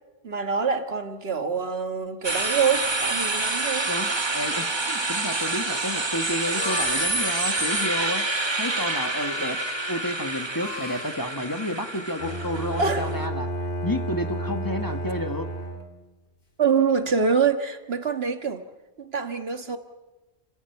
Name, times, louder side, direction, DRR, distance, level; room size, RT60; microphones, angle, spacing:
voice 1, 0.2-3.9 12.8-13.1 16.6-18.6 19.0-19.8, right 5 dB, 70° right, 7 dB, 1.8 m, -25 dB
sound 1, 2.2-13.3, right 2 dB, 25° right, 1.2 m, -28 dB
voice 2, 3.9-8.2 8.6-9.6 9.9-13.5 13.8-15.5, left 1 dB, 20° left, 6 dB, 1.5 m, -31 dB
Harmonica, 6.3-11.3, left 9 dB, 75° left, 1.2 m, -38 dB
Bowed string instrument, 12.2-16.1, right 1 dB, 55° left, 2.6 m, -31 dB
29.5 x 15.5 x 9.1 m, 1.1 s
omnidirectional pair, 1.1 m